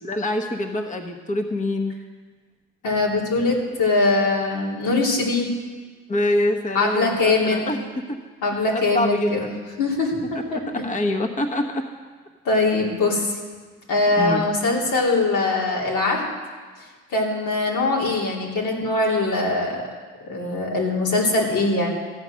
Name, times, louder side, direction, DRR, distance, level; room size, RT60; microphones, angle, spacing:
voice 1, 0.0-1.9 6.1-7.8 8.1-8.2 8.7-9.5 10.8-11.8 14.2-14.5, left 1 dB, 25° left, 4 dB, 1.0 m, -25 dB
voice 2, 2.8-5.5 6.7-7.7 8.4-9.5 9.8-10.9 12.4-13.4 13.9-16.2 17.1-19.8 20.2-21.9, left 3 dB, 90° left, -3 dB, 2.9 m, -22 dB
14.5 x 8.1 x 6.3 m, 1.4 s
cardioid pair, 95°, 30 cm